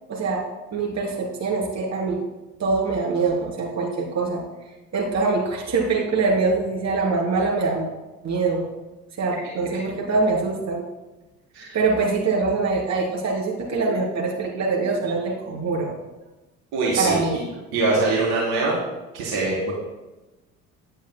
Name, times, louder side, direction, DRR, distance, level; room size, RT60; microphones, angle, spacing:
voice 1, 0.1-0.4 0.7-2.2 2.6-4.4 4.9-7.9 8.2-8.7 9.2-10.8 11.7-15.9 17.0-17.4, right 4 dB, 40° right, -2 dB, 3.3 m, -24 dB
voice 2, 16.7-17.4 17.7-18.8 19.1-19.7, right 3 dB, 60° right, -5 dB, 3.3 m, -23 dB
17.0 x 10.0 x 2.2 m, 1.1 s
figure-of-eight pair, 60°, 41 cm